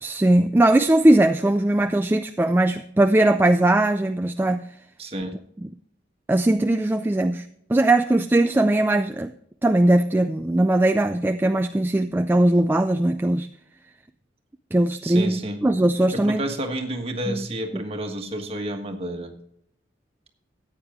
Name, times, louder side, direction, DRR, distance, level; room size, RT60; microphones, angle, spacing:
voice 1, 0.0-4.7 6.3-9.3 9.6-13.5 14.7-16.4 17.3-17.5, right 1 dB, 10° right, 7 dB, 0.3 m, -20 dB
voice 2, 5.0-5.3 15.0-15.7 16.1-19.3, right 1 dB, 30° right, 4 dB, 1.4 m, -30 dB
14.0 x 9.0 x 3.6 m, 0.69 s
head